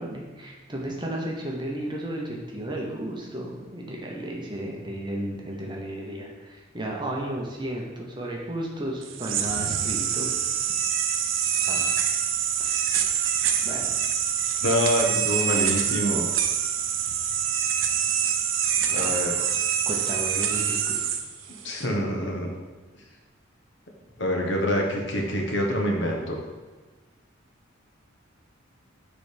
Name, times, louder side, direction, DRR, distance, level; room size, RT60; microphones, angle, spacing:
voice 1, 0.0-10.3 11.6-11.9 12.6-13.2 13.6-14.0 18.8-19.6 19.9-21.1, right 1 dB, 20° right, -1 dB, 0.8 m, -34 dB
sound 1, 9.0-21.9, right 8 dB, 70° right, 0.5 m, -25 dB
voice 2, 14.6-16.3 18.9-19.4 21.6-22.5 24.2-26.4, equal, 60° left, 0 dB, 1.0 m, -26 dB
6.7 x 3.4 x 5.1 m, 1.3 s
head